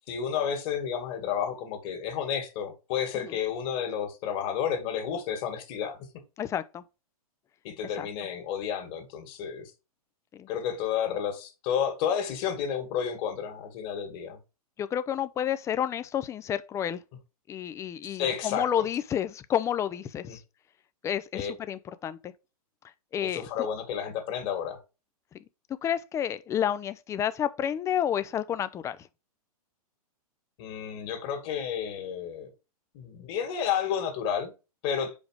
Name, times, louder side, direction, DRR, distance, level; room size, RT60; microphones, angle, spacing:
voice 1, 0.0-6.2 7.6-9.7 10.5-14.4 18.0-18.7 20.2-20.4 21.3-21.5 23.2-24.8 30.6-32.5 32.9-34.5 34.8-35.1, left 8 dB, 45° left, 2.1 m, -31 dB
voice 2, 6.4-6.8 8.0-8.1 10.3-10.5 14.8-17.0 17.5-20.4 21.0-22.3 23.1-23.5 25.8-29.0, left 9 dB, 15° left, 0.4 m, -30 dB
5.1 x 5.1 x 4.9 m
hypercardioid pair, 130°, 19 cm